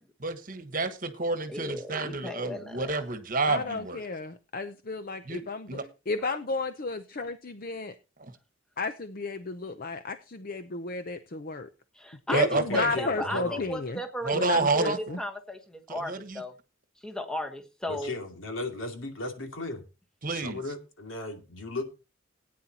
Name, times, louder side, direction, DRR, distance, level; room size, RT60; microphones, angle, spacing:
voice 1, 0.2-4.0 5.2-5.8 8.2-8.3 12.3-12.9 14.2-15.2 15.9-16.4 20.2-20.6, right 3 dB, 40° right, 10 dB, 1.3 m, -29 dB
voice 2, 1.5-2.9 11.9-16.5 17.0-18.1, left 1 dB, 5° left, 5 dB, 1.2 m, -36 dB
voice 3, 3.5-5.7 6.1-7.9 8.8-11.7 12.3-14.0 14.3-15.2, left 3 dB, 45° left, 10 dB, 0.6 m, -33 dB
voice 4, 12.7-13.6 17.9-19.8 20.3-21.8, left 2 dB, 80° left, 4 dB, 2.6 m, -36 dB
18.0 x 9.4 x 2.9 m, 0.30 s
head